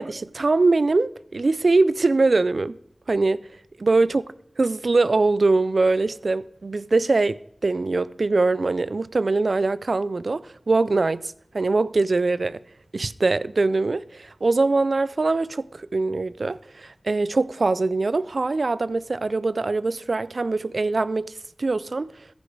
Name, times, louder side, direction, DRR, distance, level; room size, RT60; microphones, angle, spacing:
voice 1, 0.0-2.8 3.1-3.5 3.8-4.2 4.6-12.6 12.9-21.3 21.6-22.1, right 3 dB, 65° right, 0.4 m, -22 dB
14.5 x 10.5 x 4.7 m
wide cardioid pair, 80°, 0 cm